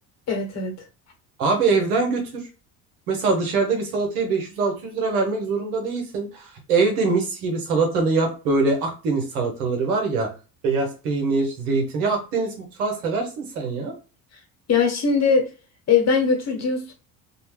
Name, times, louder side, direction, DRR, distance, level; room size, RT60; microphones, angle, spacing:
voice 1, 0.3-0.7 14.7-15.5 15.9-16.9, left 5 dB, 35° left, 1.2 m, -21 dB
voice 2, 1.4-2.5 3.1-10.3 10.6-12.5 12.8-13.9, right 4 dB, 90° right, 1.0 m, -23 dB
2.6 x 2.1 x 3.1 m
supercardioid pair, 85°, 43 cm